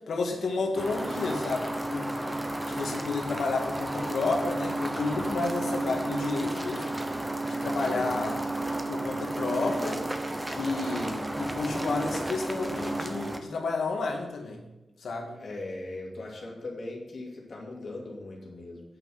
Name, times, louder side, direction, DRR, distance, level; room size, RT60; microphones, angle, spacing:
voice 1, 0.1-2.1 2.7-6.9 7.5-8.4 8.9-10.0 10.5-14.6 15.0-15.4, left 3 dB, 75° left, 1 dB, 1.9 m, -31 dB
sound 1, 0.7-13.4, right 1 dB, 10° right, 0.9 m, -32 dB
voice 2, 7.9-8.2 15.3-18.8, left 2 dB, 60° left, -2 dB, 2.6 m, -39 dB
9.1 x 5.6 x 7.6 m, 1.0 s
wide cardioid pair, 105°, 0 cm